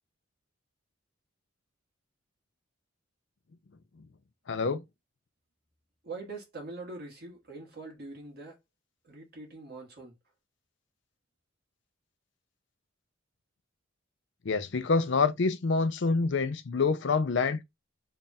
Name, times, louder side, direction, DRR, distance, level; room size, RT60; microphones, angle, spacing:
voice 1, 4.5-4.8 14.4-17.6, left 4 dB, 60° left, 0.5 m, -26 dB
voice 2, 6.0-8.6 9.0-10.1, right 3 dB, 50° right, 1.6 m, -43 dB
3.5 x 2.4 x 4.0 m
head